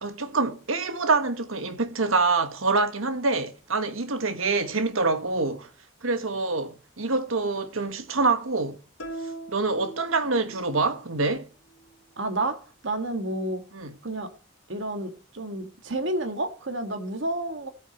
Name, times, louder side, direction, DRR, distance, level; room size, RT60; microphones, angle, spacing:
voice 1, 0.0-5.7 6.0-8.8 9.5-11.5 13.7-13.9, right 3 dB, 80° right, 1.5 m, -26 dB
sound 1, 9.0-10.8, right 2 dB, 75° left, 1.7 m, -40 dB
voice 2, 12.2-13.6 14.0-14.3 14.7-17.7, right 2 dB, 60° right, 1.8 m, -30 dB
16.5 x 9.2 x 3.0 m
head